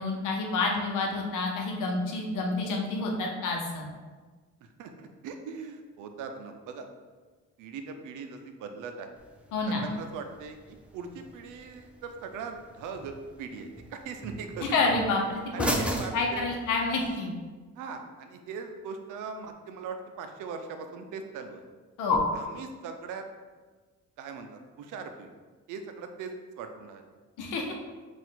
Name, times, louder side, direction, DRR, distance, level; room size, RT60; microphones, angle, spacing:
voice 1, 0.0-3.9 9.5-9.8 14.7-15.7 16.1-17.3 22.0-22.2 27.4-27.7, left 3 dB, 85° left, 1 dB, 0.8 m, -28 dB
voice 2, 4.8-6.9 7.6-9.1 9.7-14.8 15.5-16.5 17.8-21.6 22.3-23.2 24.2-25.3 25.7-27.0, right 5 dB, 85° right, 6 dB, 0.5 m, -40 dB
sound 1, 9.2-17.2, equal, 5° right, 0.4 m, -39 dB
4.3 x 2.5 x 3.8 m, 1.4 s
cardioid pair, 90°, 30 cm